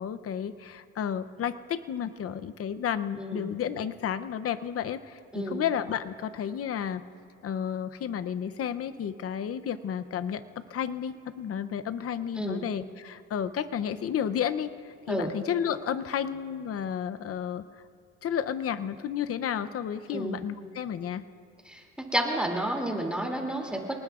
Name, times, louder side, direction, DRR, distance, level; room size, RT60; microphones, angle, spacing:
voice 1, 0.0-7.0 7.4-17.6 18.2-21.2, left 8 dB, 50° left, 11 dB, 0.7 m, -32 dB
voice 2, 3.2-3.5 5.3-5.6 12.4-12.6 15.1-15.3 20.1-20.4 21.7-23.9, right 1 dB, 5° right, 0 dB, 2.6 m, -31 dB
29.0 x 19.5 x 2.4 m, 2.4 s
cardioid pair, 90°, 30 cm